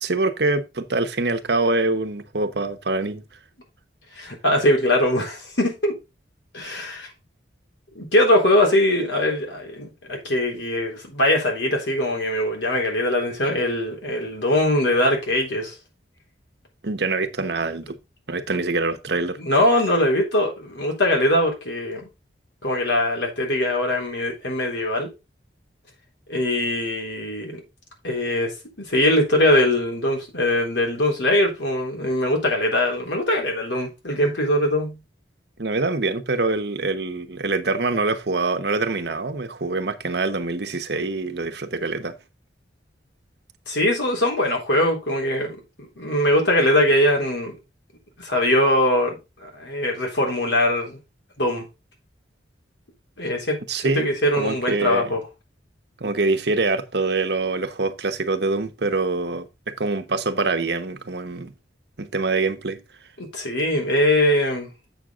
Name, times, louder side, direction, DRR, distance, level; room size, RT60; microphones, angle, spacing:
voice 1, 0.0-3.2 6.7-6.8 16.8-18.0 18.3-19.4 35.6-42.2 53.7-54.1 54.4-55.1 56.0-61.5 62.0-62.8, right 3 dB, 65° right, 1.1 m, -24 dB
voice 2, 4.1-6.0 6.5-7.1 8.0-15.8 19.4-22.1 22.6-25.1 26.3-27.6 28.0-35.0 43.7-45.6 46.0-47.6 48.2-51.0 51.4-51.7 53.2-55.2 63.2-64.7, left 1 dB, 75° left, 3.6 m, -22 dB
8.1 x 6.4 x 3.7 m
head